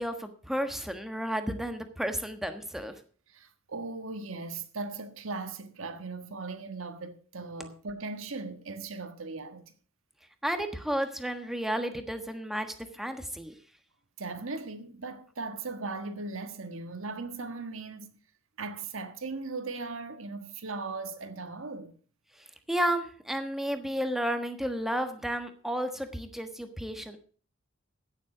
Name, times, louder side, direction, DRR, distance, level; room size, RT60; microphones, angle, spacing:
voice 1, 0.0-2.9 10.4-13.5 22.7-27.2, equal, ahead, 1.3 m, -32 dB
voice 2, 3.3-9.7 14.2-18.1 18.6-22.0, right 3 dB, 80° right, 1.5 m, -38 dB
16.0 x 7.4 x 5.0 m
head